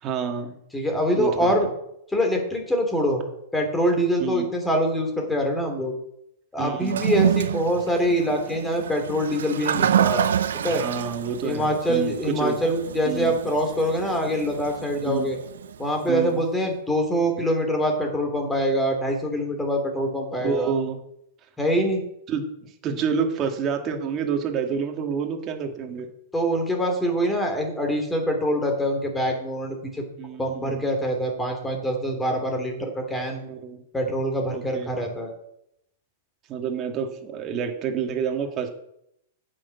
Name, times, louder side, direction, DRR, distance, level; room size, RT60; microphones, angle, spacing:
voice 1, 0.0-0.6 1.1-1.5 4.2-4.5 6.6-7.0 10.6-12.2 12.4-12.6 13.1-13.3 15.0-15.3 16.1-16.4 20.4-21.0 22.3-22.4 22.8-26.1 30.2-30.8 33.4-33.8 34.5-34.9 36.5-38.7, right 6 dB, 35° right, 3 dB, 2.0 m, -28 dB
voice 2, 0.7-1.7 2.1-3.2 3.5-5.9 6.5-10.3 10.6-10.8 11.4-15.4 15.8-20.7 21.6-22.0 26.3-30.0 30.4-33.4 33.9-35.3, equal, 10° left, 3 dB, 3.1 m, -24 dB
Toilet flush, 6.8-16.1, right 9 dB, 75° right, 0.7 m, -28 dB
8.8 x 6.4 x 7.2 m, 0.77 s
hypercardioid pair, 110°, 0 cm